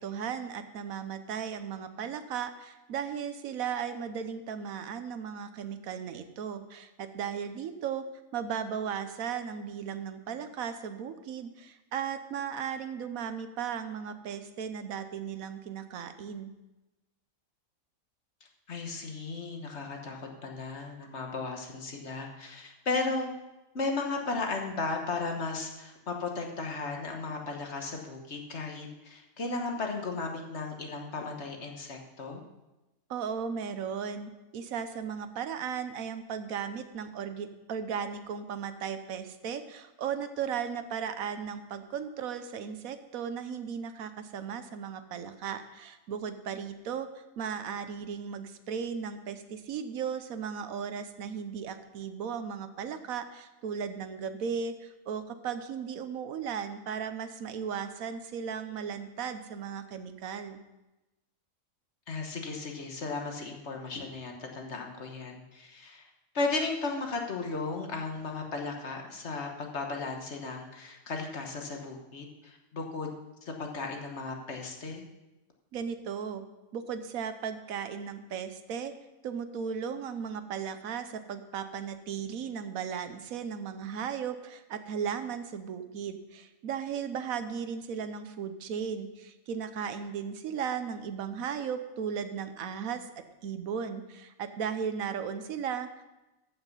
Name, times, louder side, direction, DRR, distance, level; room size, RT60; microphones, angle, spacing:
voice 1, 0.0-8.0 8.3-16.5 33.1-47.1 47.4-60.6 75.7-76.4 76.7-78.9 79.2-93.0 93.4-96.0, right 7 dB, 80° right, 10 dB, 1.2 m, -36 dB
voice 2, 18.7-23.3 23.7-32.4 62.1-66.0 66.3-73.1 73.4-75.0, left 3 dB, 55° left, 2 dB, 1.5 m, -35 dB
14.0 x 5.8 x 5.4 m, 1.0 s
omnidirectional pair, 1.4 m